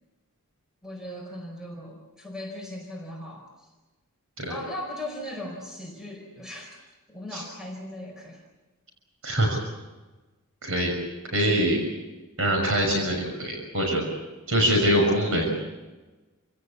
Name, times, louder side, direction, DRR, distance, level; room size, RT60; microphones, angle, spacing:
voice 1, 0.8-3.7 4.5-6.8 7.1-8.4, left 1 dB, 5° right, 0 dB, 4.5 m, -38 dB
voice 2, 9.2-9.6 10.6-10.9 11.3-11.9 12.4-14.0 14.5-15.5, equal, 65° right, 2 dB, 6.1 m, -23 dB
29.5 x 17.0 x 8.5 m, 1.2 s
head